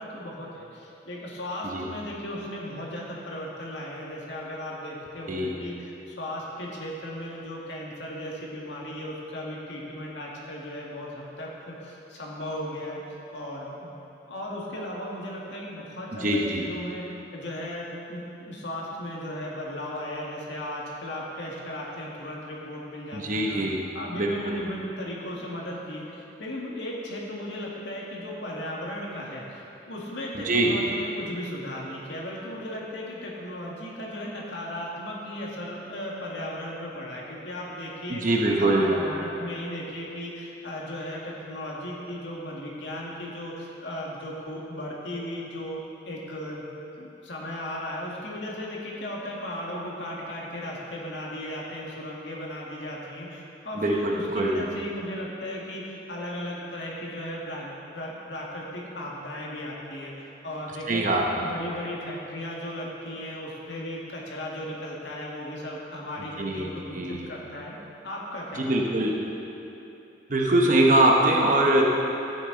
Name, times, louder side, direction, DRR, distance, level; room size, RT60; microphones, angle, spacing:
voice 1, 0.0-13.0 13.3-14.0 14.3-23.6 23.9-38.2 38.6-45.8 46.1-46.7 47.0-60.1 60.4-61.0 61.4-67.8 68.0-69.1, left 1 dB, 75° left, -3 dB, 2.0 m, -36 dB
voice 2, 16.1-16.6 23.1-23.8 24.2-24.3 30.4-30.7 38.1-38.9 53.8-54.5 60.9-61.2 66.4-67.3 68.5-69.2 70.3-71.8, right 1 dB, 45° right, -1 dB, 0.9 m, -23 dB
13.5 x 9.4 x 4.0 m, 3.0 s
head